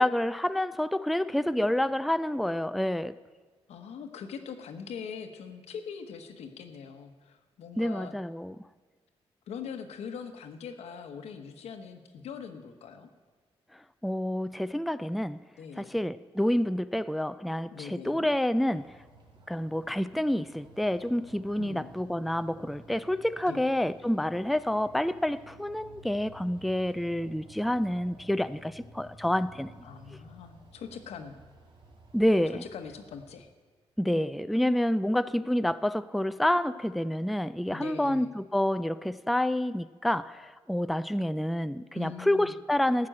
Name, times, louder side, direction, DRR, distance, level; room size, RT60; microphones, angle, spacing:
voice 1, 0.0-3.2 7.8-8.6 13.7-15.4 15.8-19.0 19.5-29.9 32.1-32.6 34.0-43.1, left 1 dB, ahead, 14 dB, 0.3 m, -28 dB
voice 2, 3.7-8.2 9.5-13.1 15.6-16.0 17.7-18.3 21.6-21.9 23.5-23.6 29.8-31.4 32.7-33.5 37.7-38.3 41.9-42.6, left 6 dB, 85° left, 7 dB, 1.1 m, -42 dB
sound 1, 18.7-33.3, right 1 dB, 50° right, 2.4 m, -54 dB
14.0 x 6.0 x 8.9 m, 1.4 s
cardioid pair, 80°, 11 cm